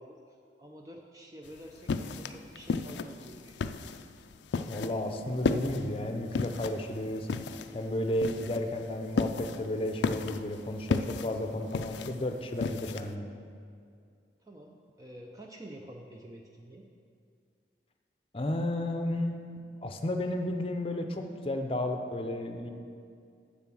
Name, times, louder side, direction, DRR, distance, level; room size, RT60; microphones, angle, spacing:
voice 1, 0.0-3.8 14.4-16.9, equal, 20° right, 1 dB, 0.5 m, -49 dB
sound 1, 1.5-13.1, left 4 dB, 80° left, 0.4 m, -34 dB
voice 2, 4.7-7.3 7.7-13.3 18.3-19.4 19.8-22.7, left 1 dB, 30° left, 5 dB, 0.6 m, -32 dB
7.6 x 7.2 x 6.1 m, 2.3 s
head